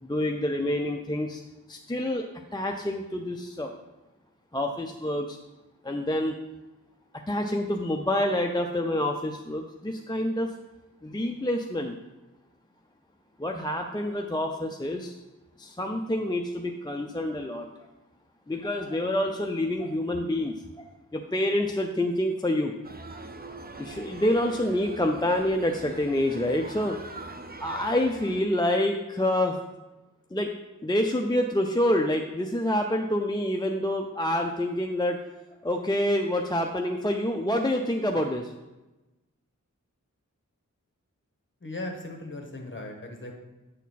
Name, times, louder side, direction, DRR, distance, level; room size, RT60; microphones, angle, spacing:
voice 1, 0.0-1.4 1.7-2.2 2.5-3.7 4.5-5.4 5.8-6.4 7.3-10.5 11.0-12.0 13.4-15.1 15.6-17.7 18.5-20.8 21.1-22.7 23.8-27.0 27.6-29.6 30.3-30.5 30.8-35.2 35.6-38.5, left 1 dB, 15° left, 3 dB, 0.5 m, -27 dB
sound 1, 22.8-28.4, right 2 dB, 30° right, 0.6 m, -42 dB
voice 2, 41.6-43.4, left 2 dB, 40° left, 1 dB, 1.4 m, -38 dB
8.1 x 4.3 x 4.1 m, 1.1 s
wide cardioid pair, 40°, 31 cm